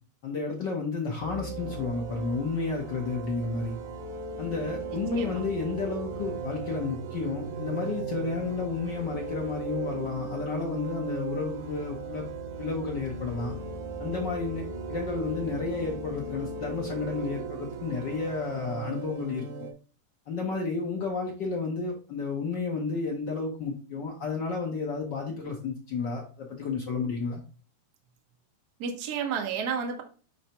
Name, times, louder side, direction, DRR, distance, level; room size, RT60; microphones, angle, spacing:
voice 1, 0.2-3.8 4.4-12.3 12.6-13.5 14.0-19.5 20.3-27.4, left 4 dB, 80° left, 0 dB, 0.9 m, -31 dB
sound 1, 1.2-19.7, right 4 dB, 85° right, 2.3 m, -37 dB
voice 2, 4.9-5.4 28.8-30.0, right 6 dB, 65° right, 3 dB, 0.9 m, -32 dB
9.8 x 3.3 x 2.9 m, 0.38 s
omnidirectional pair, 3.3 m